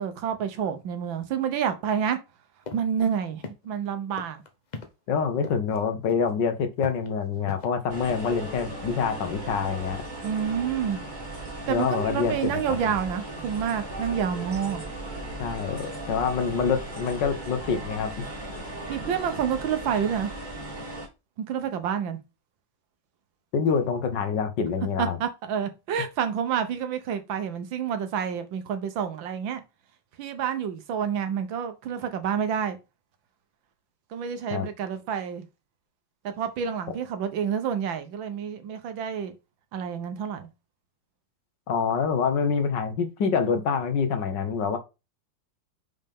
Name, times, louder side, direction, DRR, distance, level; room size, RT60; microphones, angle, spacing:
voice 1, 0.0-2.2 2.7-4.4 10.2-11.0 11.7-14.8 18.9-20.3 21.4-22.2 25.0-29.6 30.2-32.8 34.1-35.5 36.2-39.3 39.7-40.5, right 8 dB, 85° right, 1.7 m, -28 dB
sound 1, 2.6-2.8 3.1-3.2 3.4-3.8 4.2-4.9 5.4-5.8 6.1-6.3 6.8-7.7, left 4 dB, 45° left, 0.5 m, -38 dB
voice 2, 5.1-10.0 11.7-12.8 15.4-18.2 23.5-25.2 34.5-34.7 41.7-44.8, left 6 dB, 70° left, 1.7 m, -26 dB
sound 2, 7.9-21.1, right 1 dB, 25° right, 2.0 m, -37 dB
5.6 x 5.4 x 3.6 m
omnidirectional pair, 2.1 m